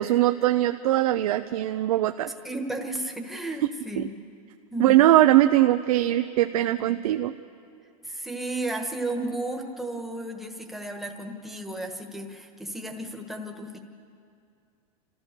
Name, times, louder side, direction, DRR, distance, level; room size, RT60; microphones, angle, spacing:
voice 1, 0.0-2.3 4.0-4.1 4.8-7.3, right 14 dB, 75° right, 8 dB, 0.6 m, -21 dB
voice 2, 2.4-4.1 4.7-5.0 6.8-6.9 8.0-13.8, right 1 dB, ahead, 2 dB, 1.4 m, -33 dB
27.0 x 15.0 x 6.8 m, 2.4 s
supercardioid pair, 155°, 19 cm